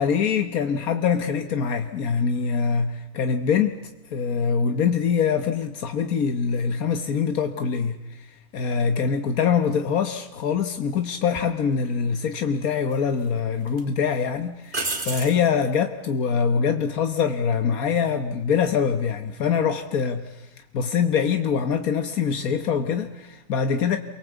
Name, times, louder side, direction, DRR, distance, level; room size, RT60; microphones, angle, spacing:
voice 1, 0.0-3.8 4.1-8.3 8.5-20.5 20.7-24.0, left 6 dB, 85° left, 7 dB, 1.6 m, -24 dB
sound 1, 11.3-11.5 12.6-13.3 13.7-13.8 14.7-15.4 18.5-18.9, right 3 dB, 35° right, 2.2 m, -31 dB
28.0 x 23.5 x 8.0 m, 0.91 s
omnidirectional pair, 1.5 m